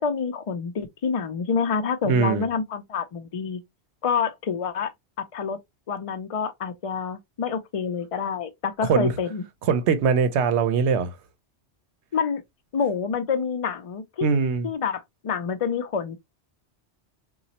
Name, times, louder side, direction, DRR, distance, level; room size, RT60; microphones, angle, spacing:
voice 1, 0.0-3.6 4.0-4.9 5.2-5.6 5.9-9.4 12.1-12.4 12.7-14.3 14.6-16.2, left 6 dB, 55° left, 0.4 m, -27 dB
voice 2, 2.0-2.5 8.8-9.1 9.6-11.2 14.2-14.7, right 6 dB, 80° right, 0.9 m, -22 dB
4.0 x 2.3 x 2.8 m
omnidirectional pair, 1.1 m